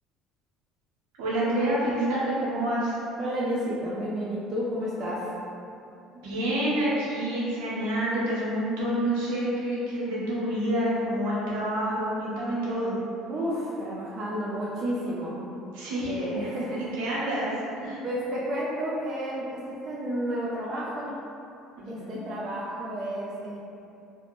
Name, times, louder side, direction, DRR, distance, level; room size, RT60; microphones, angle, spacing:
voice 1, 1.2-3.0 6.1-12.9 15.7-16.2 16.8-17.5 17.8-18.0 21.8-22.2, right 1 dB, 85° right, -7 dB, 0.8 m, -28 dB
voice 2, 3.2-5.3 13.3-15.4 16.0-16.9 18.0-21.2 21.9-23.6, equal, 45° right, -6 dB, 0.4 m, -31 dB
2.5 x 2.1 x 3.0 m, 2.7 s
supercardioid pair, 90°, 0 cm